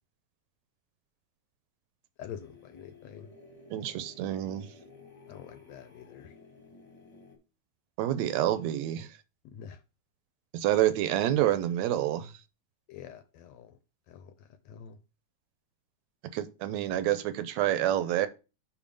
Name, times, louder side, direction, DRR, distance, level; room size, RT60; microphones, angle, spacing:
voice 1, 2.2-3.3 5.3-6.3 9.5-9.8 12.9-13.7 14.1-14.3 14.7-15.0, left 9 dB, 75° left, 1.8 m, -46 dB
sound 1, 2.3-7.4, left 3 dB, 15° left, 1.5 m, -54 dB
voice 2, 3.7-4.7 8.0-9.1 10.5-12.3 16.3-18.3, right 12 dB, 75° right, 1.8 m, -28 dB
5.1 x 5.1 x 5.3 m
omnidirectional pair, 3.3 m